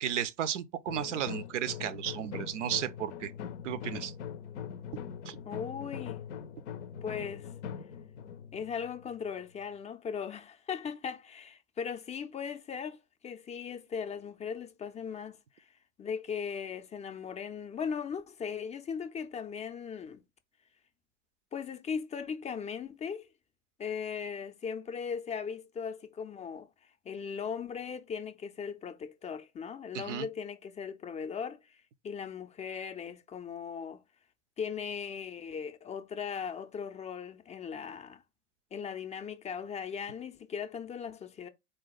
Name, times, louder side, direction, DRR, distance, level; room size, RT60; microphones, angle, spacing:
voice 1, 0.0-3.3 3.6-4.1 5.3-5.4 29.9-30.3, right 10 dB, 90° right, 0.5 m, -34 dB
sound 1, 0.9-9.7, left 8 dB, 80° left, 0.5 m, -42 dB
voice 2, 5.4-6.2 7.0-7.5 8.5-15.6 16.0-20.2 21.5-23.3 23.8-26.7 27.1-34.0 34.6-38.2 38.7-41.5, left 6 dB, 20° left, 0.4 m, -38 dB
3.8 x 2.2 x 3.9 m
hypercardioid pair, 90°, 35 cm